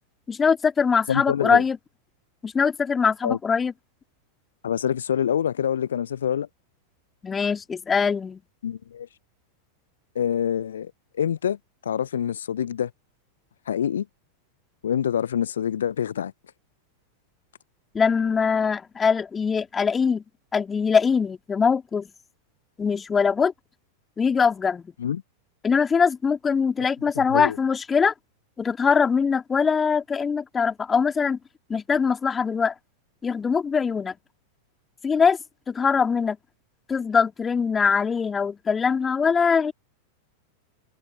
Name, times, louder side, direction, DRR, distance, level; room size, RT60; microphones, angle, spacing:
voice 1, 0.3-1.8 2.4-3.7 7.2-8.4 17.9-20.2 20.5-22.1 22.8-23.5 24.2-24.9 25.6-28.1 28.6-31.4 31.7-32.7 33.2-34.1 35.0-35.4 35.7-36.4 36.9-39.7, left 6 dB, 15° left, 2.7 m, -22 dB
voice 2, 1.1-1.6 3.2-3.4 4.6-6.5 8.6-9.1 10.2-10.9 11.2-11.6 11.8-12.9 13.7-14.1 14.8-16.3 25.0-25.2 27.3-27.6, left 9 dB, 65° left, 0.5 m, -25 dB
figure-of-eight pair, 90°, 0 cm